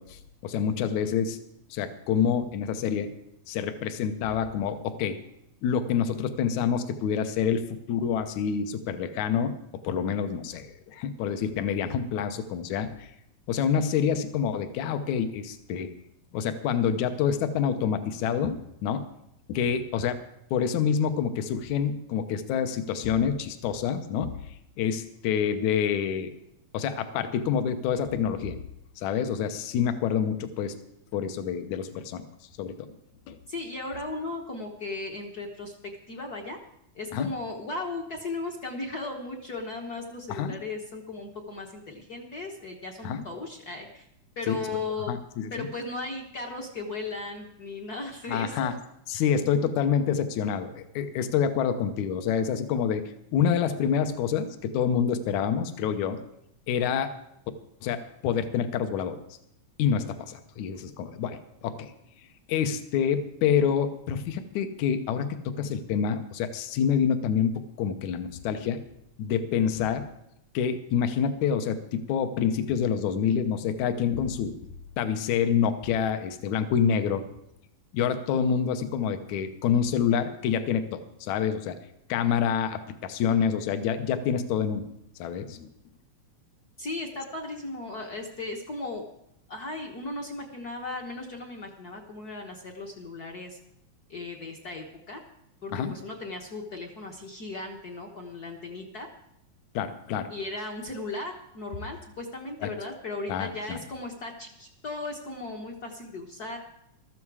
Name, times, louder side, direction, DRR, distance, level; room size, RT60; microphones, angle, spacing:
voice 1, 0.0-1.4 1.7-3.1 3.5-5.2 5.6-9.6 9.8-13.1 13.5-15.9 16.3-19.1 19.5-20.2 20.5-24.3 24.8-26.3 26.7-28.6 29.0-30.8 31.1-32.2 32.6-32.9 33.3-33.4 37.1-37.3 40.3-40.5 43.0-43.2 44.5-44.6 45.1-45.7 48.3-48.8 49.1-56.2 56.7-57.1 57.8-59.2 59.8-61.9 62.5-68.8 69.2-70.1 70.5-74.5 75.0-77.2 77.9-81.8 82.1-84.9 85.2-85.7 95.7-95.9 99.7-100.3 102.6-102.7 103.3-103.8, left 7 dB, 75° left, 9 dB, 2.3 m, -27 dB
voice 2, 33.5-35.7 36.1-36.6 36.9-44.1 44.4-45.1 45.5-48.8 49.1-49.2 86.8-89.0 89.5-93.6 94.1-95.2 95.6-99.1 100.3-106.6, left 2 dB, 50° left, 2 dB, 1.1 m, -36 dB
15.0 x 13.0 x 4.8 m, 0.79 s
omnidirectional pair, 3.4 m